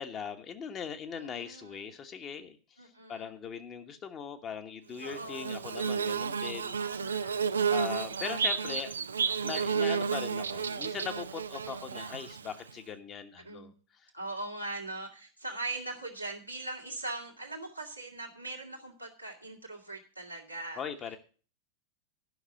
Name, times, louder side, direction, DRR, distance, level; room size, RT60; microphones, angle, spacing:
voice 1, 0.0-2.6 3.1-6.8 7.7-8.9 9.4-13.7 20.8-21.2, left 7 dB, 30° left, 6 dB, 1.2 m, -40 dB
voice 2, 1.1-1.9 2.8-3.3 5.0-5.7 6.8-8.1 9.0-9.1 9.5-10.1 13.4-13.7 14.1-20.8, right 2 dB, 90° right, -2 dB, 2.3 m, -41 dB
Bird / Buzz, 5.0-12.7, right 6 dB, 70° right, 0.4 m, -32 dB
11.5 x 5.9 x 7.5 m, 0.39 s
figure-of-eight pair, 90°, 0 cm